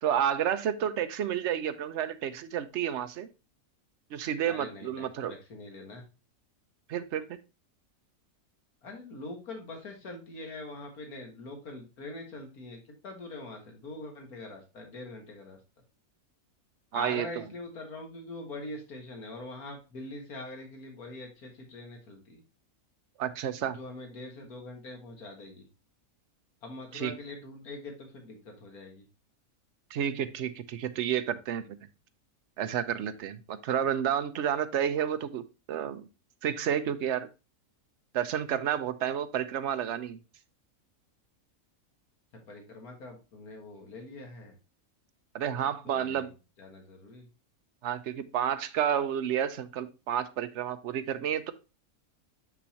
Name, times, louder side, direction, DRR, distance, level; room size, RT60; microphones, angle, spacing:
voice 1, 0.0-3.3 4.1-5.3 6.9-7.2 16.9-17.4 23.2-23.8 26.9-27.1 29.9-31.8 32.6-35.4 35.7-36.1 36.4-37.3 38.1-40.2 45.3-46.3 47.8-51.5, right 9 dB, 60° right, 10 dB, 0.9 m, -30 dB
voice 2, 4.5-6.0 8.8-15.6 16.9-22.4 23.7-25.6 26.6-29.0 42.5-44.6 45.9-46.3 46.6-47.3, left 2 dB, 75° left, 2 dB, 2.1 m, -43 dB
6.7 x 6.2 x 2.8 m, 0.29 s
omnidirectional pair, 1.6 m